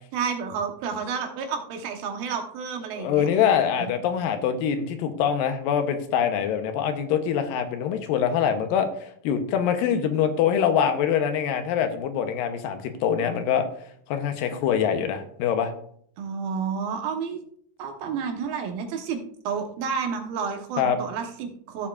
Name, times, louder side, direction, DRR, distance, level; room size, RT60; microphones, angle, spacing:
voice 1, 0.1-3.3 3.8-3.9 16.2-17.4 17.8-21.9, right 6 dB, 85° right, 5 dB, 2.9 m, -30 dB
voice 2, 2.9-13.7 14.1-15.7 20.8-21.0, left 8 dB, 80° left, 8 dB, 2.5 m, -24 dB
15.5 x 7.3 x 2.4 m, 0.63 s
omnidirectional pair, 4.1 m